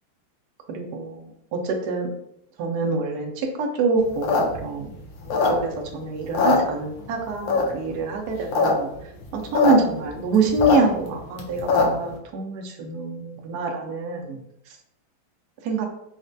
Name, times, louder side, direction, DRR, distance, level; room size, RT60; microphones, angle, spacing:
voice 1, 0.7-1.2 1.5-2.1 2.6-4.9 5.5-8.9 9.3-14.4 15.6-15.8, right 3 dB, 85° right, 1 dB, 0.8 m, -25 dB
sound 1, 4.1-5.9 6.2-7.1 7.5-7.9 8.3-8.7 9.0-9.1 9.2-9.7 10.1-12.1, left 4 dB, 75° left, 1.3 m, -21 dB
4.0 x 2.1 x 2.6 m, 0.76 s
omnidirectional pair, 2.3 m